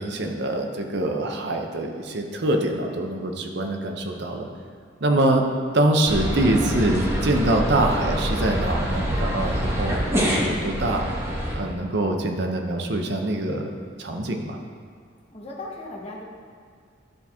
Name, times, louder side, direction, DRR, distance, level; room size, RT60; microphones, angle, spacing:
voice 1, 0.0-4.5 5.0-5.5 5.7-11.1 11.5-13.7 14.0-14.6, right 1 dB, 60° right, 3 dB, 0.8 m, -24 dB
sound 1, 6.1-11.5, equal, 15° right, 1.1 m, -26 dB
voice 2, 15.3-16.3, left 2 dB, 35° left, -3 dB, 1.2 m, -37 dB
11.5 x 4.4 x 3.6 m, 2.1 s
head